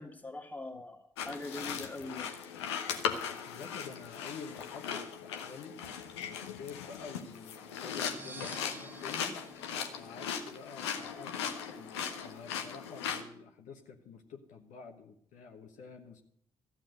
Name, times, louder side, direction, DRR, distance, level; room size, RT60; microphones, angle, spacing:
voice 1, 0.0-2.4, left 2 dB, 10° left, 3 dB, 2.1 m, -42 dB
sound 1, 1.2-13.2, left 7 dB, 80° left, 0.9 m, -38 dB
voice 2, 3.5-9.3 9.9-11.9 12.2-16.2, left 5 dB, 65° left, 3 dB, 1.3 m, -49 dB
sound 2, 7.9-10.7, right 3 dB, 15° right, 1.3 m, -51 dB
14.0 x 7.4 x 7.7 m, 0.66 s
figure-of-eight pair, 40°, 14 cm